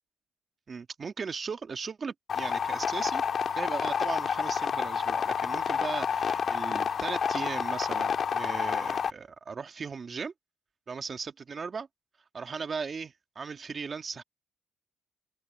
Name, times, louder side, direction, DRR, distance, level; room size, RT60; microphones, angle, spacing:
voice 1, 0.7-10.3 10.9-11.9 12.3-14.2, right 5 dB, 40° right, 2.1 m, -37 dB
sound 1, 2.3-9.1, left 7 dB, 50° left, 1.6 m, -29 dB
cardioid pair, 90°, 0 cm